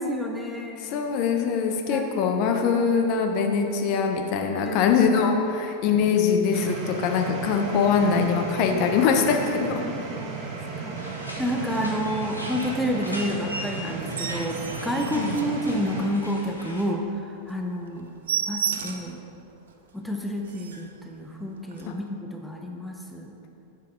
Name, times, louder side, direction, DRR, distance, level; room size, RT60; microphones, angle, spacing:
voice 1, 0.0-1.1 1.9-2.9 4.6-4.9 9.7-18.2 18.5-19.2 19.9-23.4, equal, ahead, 1 dB, 0.6 m, -30 dB
voice 2, 0.8-9.8 15.1-15.4, left 6 dB, 40° left, 3 dB, 0.6 m, -23 dB
sound 1, 6.5-16.0, right 4 dB, 40° right, 0.8 m, -35 dB
sound 2, 10.9-16.8, equal, 90° left, 0.8 m, -39 dB
sound 3, 14.0-16.2 16.6-16.7 17.1-17.2 17.5-17.6 17.9-19.2 19.7-19.8 20.1-20.2 20.4-21.0 21.7-21.9, right 7 dB, 60° right, 0.4 m, -32 dB
7.2 x 4.5 x 3.7 m, 2.6 s
figure-of-eight pair, 90°, 0 cm